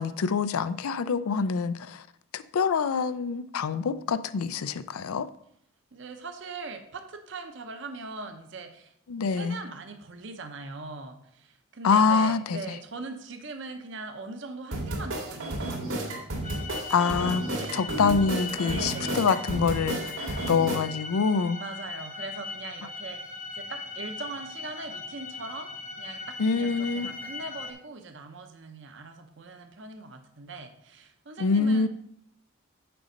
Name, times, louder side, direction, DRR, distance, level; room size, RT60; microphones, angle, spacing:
voice 1, 0.0-2.0 2.3-5.3 9.1-9.6 11.8-12.6 16.9-17.4 17.7-21.6 26.4-27.1 31.4-31.9, left 5 dB, 90° left, 0.4 m, -25 dB
voice 2, 5.9-8.9 9.3-16.2 17.6-17.8 18.6-19.3 21.6-25.7 26.0-31.9, right 3 dB, 55° right, 0.7 m, -41 dB
sound 1, 14.7-20.8, right 1 dB, 80° right, 1.9 m, -32 dB
sound 2, 16.4-27.7, left 4 dB, 35° left, 0.9 m, -39 dB
6.8 x 5.1 x 5.1 m
head